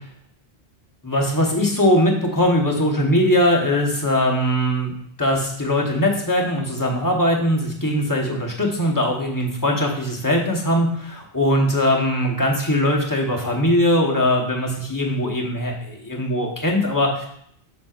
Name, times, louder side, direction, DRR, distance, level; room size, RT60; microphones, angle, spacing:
voice 1, 1.0-4.9 5.2-17.3, left 1 dB, 20° left, -1 dB, 1.1 m, -20 dB
7.1 x 6.7 x 2.5 m, 0.66 s
omnidirectional pair, 1.1 m